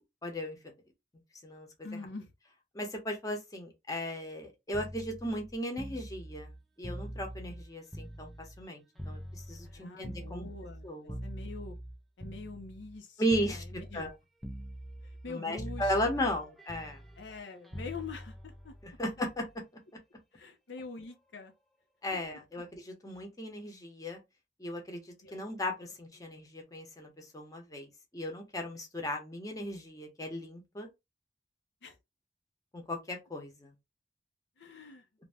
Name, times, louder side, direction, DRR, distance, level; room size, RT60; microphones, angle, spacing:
voice 1, 0.2-0.6 1.4-1.7 2.7-10.5 10.8-11.2 13.2-13.6 13.9-14.1 15.3-17.0 18.8-19.5 22.0-24.2 24.6-25.0 25.3-27.9 28.1-30.9 32.7-33.7, equal, 20° left, 0.8 m, -36 dB
voice 2, 1.8-2.3 9.6-11.8 12.2-13.2 13.5-14.1 15.0-16.3 17.2-19.0 20.3-21.5 25.2-25.5 31.8-32.0 34.6-35.1, left 4 dB, 85° left, 0.6 m, -45 dB
sound 1, 4.7-8.7 9.0-13.0 13.3-14.1 14.4-15.3 15.6-19.6 20.8-21.0, equal, ahead, 0.3 m, -44 dB
2.6 x 2.1 x 3.3 m
head